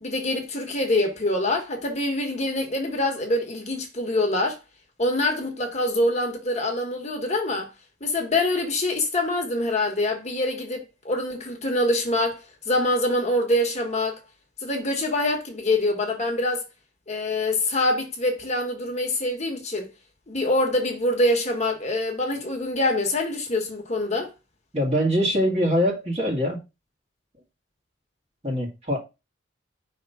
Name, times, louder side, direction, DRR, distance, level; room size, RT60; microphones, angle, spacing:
voice 1, 0.0-4.6 5.0-7.7 8.0-12.4 12.7-14.2 14.6-16.6 17.1-19.9 20.3-24.3, left 1 dB, 35° left, 1.3 m, -25 dB
voice 2, 24.7-26.6 28.4-29.0, equal, 35° right, 2.0 m, -23 dB
5.3 x 3.5 x 5.6 m
head